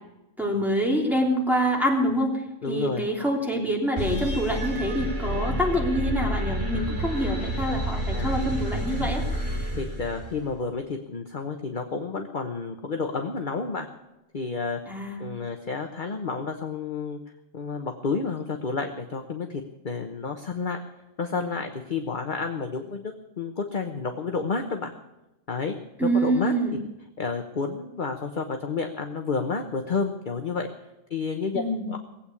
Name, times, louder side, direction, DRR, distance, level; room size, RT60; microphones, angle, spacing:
voice 1, 0.4-9.4 14.9-15.2 26.0-26.8 31.5-31.9, equal, ahead, -2 dB, 3.2 m, -26 dB
voice 2, 2.6-3.0 8.1-8.4 9.7-13.9 14.3-14.8 15.2-17.2 17.5-20.8 21.2-24.9 25.5-25.7 26.1-26.5 27.2-30.7 31.1-31.6 31.9-32.0, left 4 dB, 40° left, 4 dB, 1.2 m, -30 dB
sound 1, 4.0-10.5, right 1 dB, 45° right, 4.9 m, -29 dB
19.0 x 8.7 x 8.4 m, 0.94 s
omnidirectional pair, 1.4 m